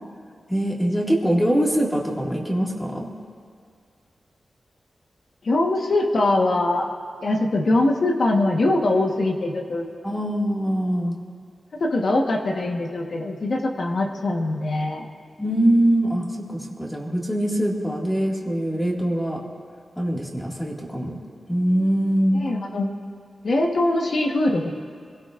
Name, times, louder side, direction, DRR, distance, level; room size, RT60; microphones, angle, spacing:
voice 1, 0.5-3.1 10.0-11.2 15.4-19.4 20.0-21.2 21.5-22.4, right 1 dB, 10° left, -2 dB, 2.0 m, -23 dB
voice 2, 5.4-6.9 7.2-9.9 11.7-15.1 22.4-22.9 23.4-24.7, left 2 dB, 55° left, 1 dB, 1.2 m, -22 dB
26.0 x 17.0 x 2.5 m, 2.1 s
wide cardioid pair, 140°, 0 cm